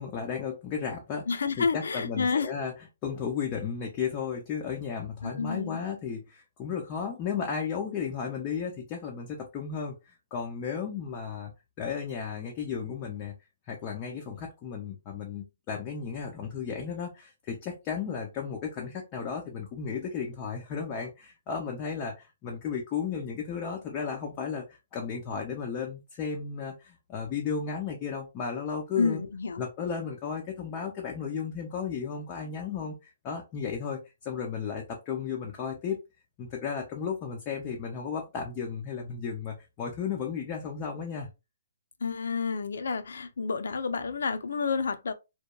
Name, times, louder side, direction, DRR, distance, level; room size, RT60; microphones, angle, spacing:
voice 1, 0.0-2.7 3.0-11.5 11.8-13.3 13.7-29.2 29.6-36.0 36.4-41.3, left 6 dB, 15° left, 0.3 m, -34 dB
voice 2, 1.3-2.5 5.2-5.8 29.0-29.6 42.0-45.1, left 5 dB, 85° left, 0.4 m, -29 dB
2.8 x 2.2 x 2.2 m
hypercardioid pair, 180°, 0 cm